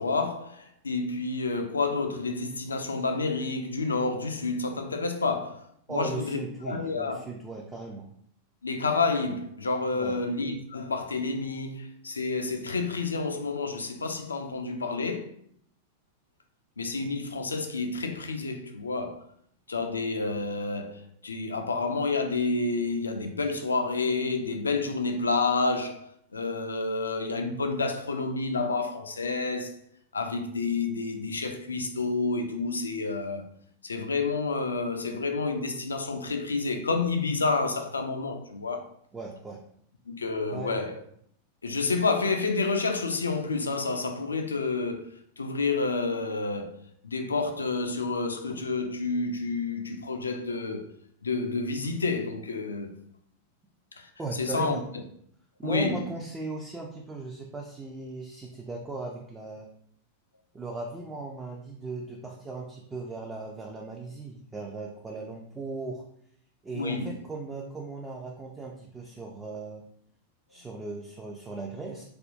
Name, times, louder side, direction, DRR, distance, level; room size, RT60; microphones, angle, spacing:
voice 1, 0.0-5.6 5.9-7.2 8.6-15.3 16.8-19.2 19.7-29.8 30.1-33.5 33.8-38.9 40.1-41.0 41.6-45.1 45.4-46.7 47.0-50.9 51.2-53.0 53.9-54.8 55.6-56.0 66.7-67.2, left 3 dB, 75° left, 0.3 m, -29 dB
voice 2, 5.9-8.1 10.0-10.2 39.1-39.6 40.5-40.9 54.2-54.8 55.6-59.7 60.5-66.0 66.6-69.8 70.5-72.0, right 3 dB, 15° right, 0.3 m, -37 dB
3.3 x 2.1 x 2.5 m
figure-of-eight pair, 90°, 0 cm